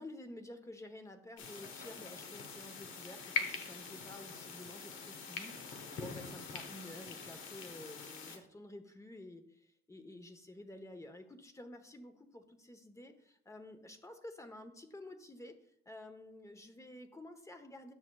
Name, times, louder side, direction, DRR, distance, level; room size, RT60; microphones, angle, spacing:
voice 1, 0.0-15.6 15.9-17.9, left 1 dB, 15° left, 7 dB, 0.9 m, -51 dB
sound 1, 1.4-8.4, left 5 dB, 85° left, 1.0 m, -43 dB
9.6 x 6.3 x 2.3 m, 0.69 s
cardioid pair, 90°, 20 cm